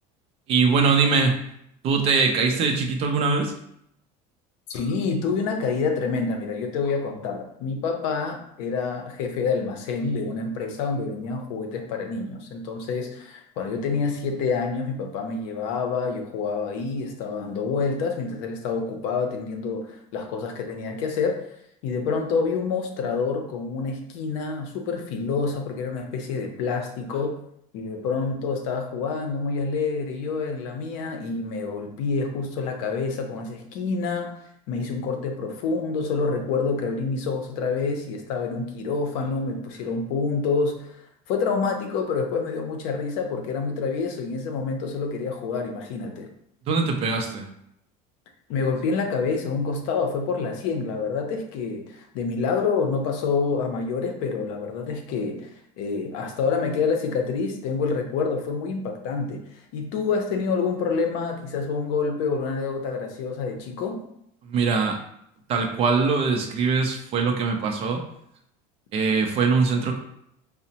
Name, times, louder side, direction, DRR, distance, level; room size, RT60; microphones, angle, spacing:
voice 1, 0.5-1.4 1.8-3.5 46.7-47.5 64.4-65.0 65.5-68.0 68.9-70.0, right 4 dB, 35° right, 3 dB, 0.4 m, -22 dB
voice 2, 4.7-21.5 21.8-27.4 27.7-34.3 34.7-41.0 41.3-46.3 48.5-64.0, left 4 dB, 70° left, 4 dB, 0.6 m, -27 dB
4.9 x 2.1 x 2.8 m, 0.74 s
cardioid pair, 165°, 18 cm